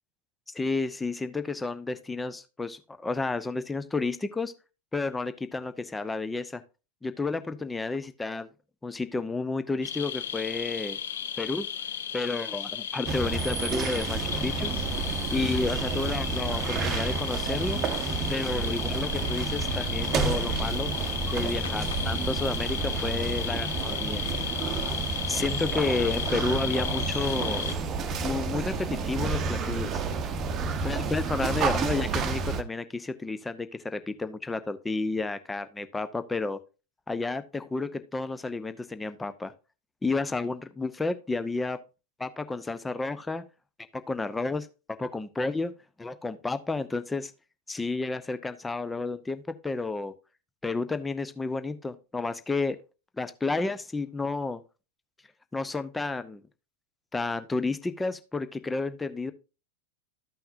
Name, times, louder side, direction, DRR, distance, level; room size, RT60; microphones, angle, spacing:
voice 1, 0.5-4.5 4.9-6.6 7.0-8.5 8.8-11.0 11.4-11.7 12.1-14.7 15.3-17.8 18.3-20.9 21.3-24.2 25.3-27.7 28.2-30.0 30.8-36.6 37.1-39.5 40.0-41.8 42.2-43.4 43.9-44.6 45.0-45.7 46.0-47.3 47.7-50.1 50.6-52.8 53.2-54.6 55.5-56.4 57.1-59.3, left 3 dB, 10° left, 12 dB, 0.7 m, -31 dB
sound 1, 9.8-27.7, left 8 dB, 60° left, 0.6 m, -34 dB
sound 2, 13.1-32.6, right 4 dB, 30° right, 0.9 m, -30 dB
sound 3, 14.1-28.7, left 1 dB, 85° left, 1.7 m, -50 dB
13.5 x 5.7 x 2.6 m, 0.30 s
figure-of-eight pair, 90°, 0 cm